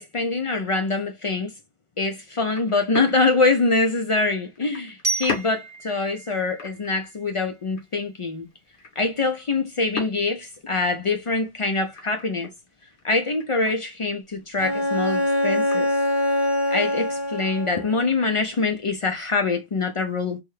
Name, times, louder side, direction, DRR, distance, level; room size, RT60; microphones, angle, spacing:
voice 1, 0.0-1.5 2.0-8.5 9.0-12.5 13.0-15.9 16.7-20.4, left 3 dB, 55° left, 0.3 m, -24 dB
sound 1, 2.0-16.6, left 4 dB, 80° left, 1.3 m, -41 dB
Glockenspiel, 5.0-7.9, right 3 dB, 20° right, 1.0 m, -33 dB
Bowed string instrument, 14.6-18.1, left 1 dB, 30° left, 0.7 m, -24 dB
3.5 x 2.2 x 3.1 m
omnidirectional pair, 1.1 m